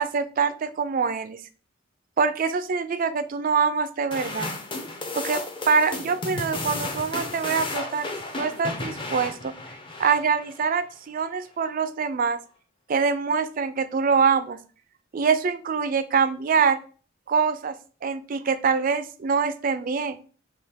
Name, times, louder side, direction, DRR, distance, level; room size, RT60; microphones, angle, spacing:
voice 1, 0.0-1.4 2.2-4.5 5.2-9.5 10.0-12.4 12.9-14.6 15.1-16.8 17.3-17.7 18.0-20.2, right 5 dB, 45° right, 12 dB, 0.4 m, -24 dB
sound 1, 4.1-10.6, left 2 dB, 25° left, 0.6 m, -33 dB
5.6 x 2.3 x 3.4 m, 0.39 s
head